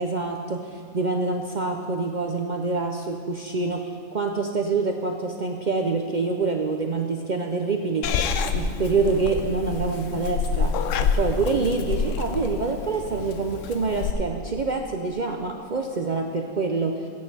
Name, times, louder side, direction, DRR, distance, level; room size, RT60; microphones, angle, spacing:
voice 1, 0.0-3.8 4.1-8.1 8.4-10.7 11.0-17.1, right 4 dB, 55° right, 3 dB, 0.5 m, -26 dB
Purr / Meow, 8.0-14.1, left 5 dB, 65° left, 0.9 m, -27 dB
16.0 x 9.5 x 3.4 m, 2.3 s
omnidirectional pair, 1.5 m